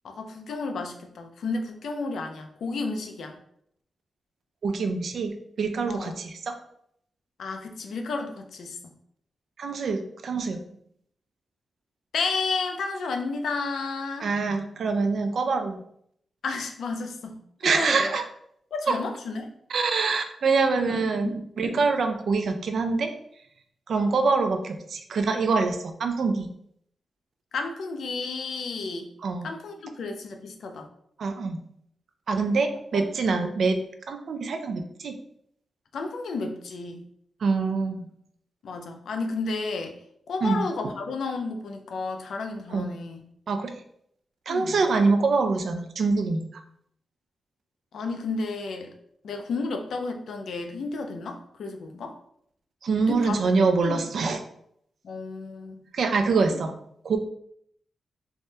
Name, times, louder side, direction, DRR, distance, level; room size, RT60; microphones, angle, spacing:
voice 1, 0.0-3.4 5.9-6.1 7.4-8.9 12.1-14.3 16.4-17.4 17.6-18.1 18.7-19.5 20.9-21.3 21.6-21.8 27.5-29.1 29.4-30.9 32.9-33.0 35.9-37.0 38.6-39.9 40.3-43.2 44.5-44.7 47.9-48.9 49.2-52.1 53.0-53.4 53.8-54.0 55.0-55.8 56.4-56.5, left 3 dB, 85° left, 5 dB, 0.4 m, -32 dB
voice 2, 4.6-6.5 9.6-10.6 14.2-15.8 17.6-18.2 18.9-19.0 19.7-23.1 23.9-26.5 29.2-29.5 31.2-31.6 32.3-33.8 34.1-35.2 37.4-38.1 40.4-40.7 42.7-42.9 43.5-43.8 44.5-46.6 52.8-54.4 55.9-56.7 57.0-57.2, right 4 dB, 65° right, 6 dB, 0.3 m, -25 dB
3.4 x 2.1 x 2.7 m, 0.70 s
wide cardioid pair, 120°, 0 cm